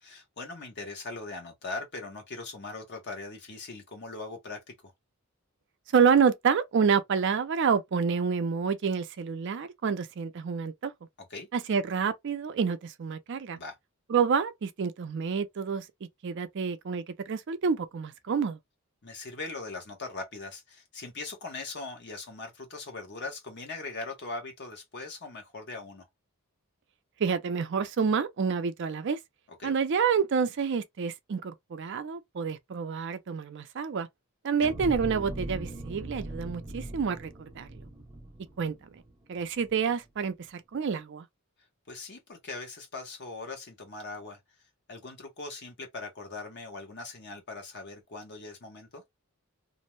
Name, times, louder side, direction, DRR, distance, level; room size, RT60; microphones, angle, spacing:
voice 1, 0.0-4.9 11.3-11.5 13.5-13.8 19.0-26.0 29.5-29.7 34.6-34.7 41.9-44.4 44.9-49.0, left 3 dB, 50° left, 0.9 m, -40 dB
voice 2, 5.9-10.9 11.5-13.6 14.1-15.9 16.2-18.6 27.2-29.2 29.6-34.1 34.4-37.8 38.6-39.0 39.3-41.3, right 6 dB, 55° right, 0.4 m, -28 dB
sound 1, 34.6-39.1 39.6-39.7, right 1 dB, 20° right, 0.7 m, -40 dB
2.5 x 2.1 x 3.0 m
head